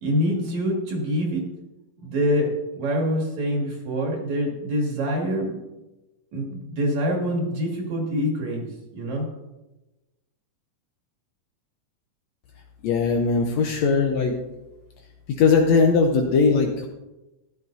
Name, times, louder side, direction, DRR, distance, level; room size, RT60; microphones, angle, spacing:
voice 1, 0.0-1.4 2.0-5.6 6.3-8.7 8.9-9.3, equal, 60° right, 0 dB, 3.3 m, -25 dB
voice 2, 12.8-14.4 15.4-16.9, left 4 dB, 70° left, 3 dB, 1.7 m, -19 dB
14.5 x 11.0 x 2.7 m, 1.0 s
omnidirectional pair, 3.7 m